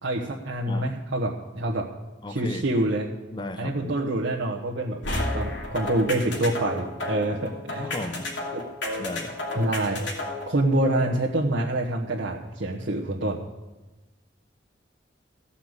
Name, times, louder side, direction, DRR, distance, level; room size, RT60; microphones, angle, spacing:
voice 1, 0.0-1.8 2.3-3.0 3.6-5.0 5.3-7.9 9.5-10.0 10.5-13.4, right 1 dB, 75° right, -4 dB, 1.3 m, -26 dB
voice 2, 2.2-2.7 3.3-3.9 7.8-8.3 9.0-9.4, left 2 dB, 25° left, 8 dB, 0.7 m, -35 dB
sound 1, 5.0-10.5, left 2 dB, 75° left, 2.6 m, -31 dB
15.5 x 5.7 x 8.1 m, 1.2 s
head